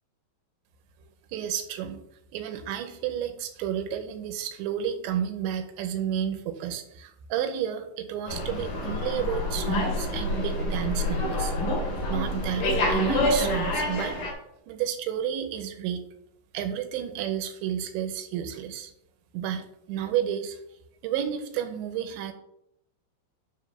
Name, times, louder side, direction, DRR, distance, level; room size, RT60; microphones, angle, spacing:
voice 1, 1.3-2.0 2.3-11.6 12.1-14.2 14.7-16.0 16.5-18.9 19.3-20.6 21.0-22.3, right 9 dB, 80° right, 7 dB, 2.9 m, -31 dB
Slam, 8.3-14.3, left 1 dB, 55° left, 3.3 m, -27 dB
9.7 x 3.7 x 6.5 m, 0.77 s
omnidirectional pair, 5.5 m